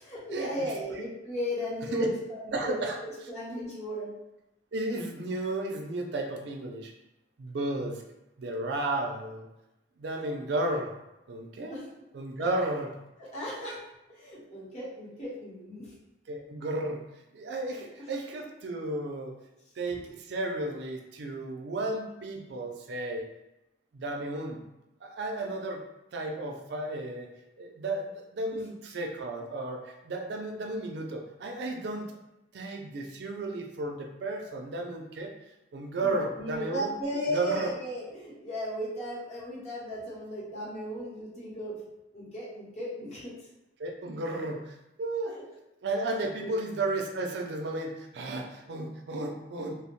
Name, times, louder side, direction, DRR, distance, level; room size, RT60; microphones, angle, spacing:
voice 1, 0.0-2.8 3.0-4.2 11.7-11.9 12.4-12.5 13.2-13.8 14.1-15.9 17.7-17.9 36.0-41.8 42.1-43.5 45.3-45.4 46.1-46.5, equal, 35° left, -7 dB, 0.9 m, -36 dB
voice 2, 2.5-3.0 4.7-6.9 7.4-8.0 8.4-9.5 10.0-10.9 11.3-11.8 12.1-12.9 16.3-17.0 17.3-19.4 19.8-23.3 23.9-24.6 25.0-25.8 26.1-27.3 27.6-32.2 32.5-35.3 35.7-36.9 37.3-37.7 43.8-45.4 45.8-49.8, right 2 dB, 65° right, 2 dB, 0.4 m, -33 dB
2.9 x 2.0 x 3.0 m, 0.92 s
head